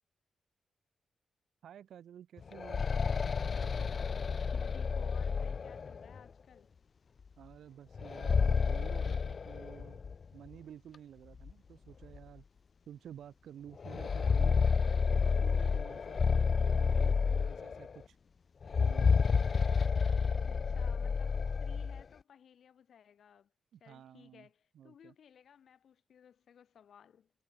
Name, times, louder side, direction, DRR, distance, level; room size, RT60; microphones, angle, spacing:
voice 1, 1.6-2.9 7.4-10.0 10.3-12.4 12.9-15.0 15.4-18.2 18.8-19.1 23.7-24.5 24.7-25.1, right 9 dB, 80° right, 2.5 m, -52 dB
sound 1, 2.4-6.2 8.0-10.2 10.5-10.6 11.4-11.5 12.0-12.2 13.8-18.0 18.6-22.0, left 5 dB, 50° left, 0.5 m, -30 dB
voice 2, 4.5-6.7 20.4-23.5 23.8-27.3, left 8 dB, 70° left, 2.6 m, -59 dB
cardioid pair, 90°, 0 cm